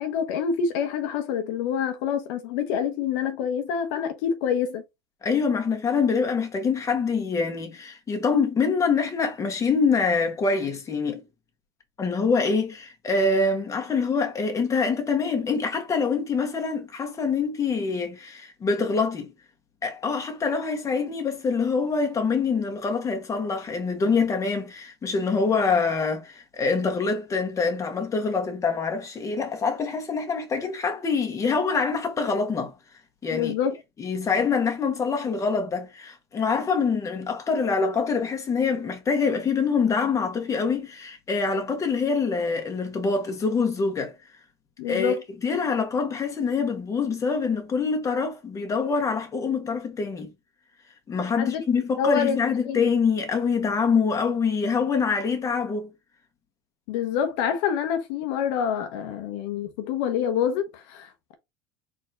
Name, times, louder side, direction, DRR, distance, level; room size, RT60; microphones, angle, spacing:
voice 1, 0.0-4.8 33.3-33.8 44.8-45.2 51.3-51.6 52.0-52.4 52.7-52.9 56.9-61.3, left 7 dB, 70° left, 1.0 m, -27 dB
voice 2, 5.2-11.2 12.0-19.3 19.8-32.7 33.2-33.5 34.0-44.2 44.9-45.2 45.4-50.3 51.1-55.9, left 5 dB, 25° left, 1.6 m, -25 dB
4.3 x 3.8 x 2.9 m
supercardioid pair, 115°, 13 cm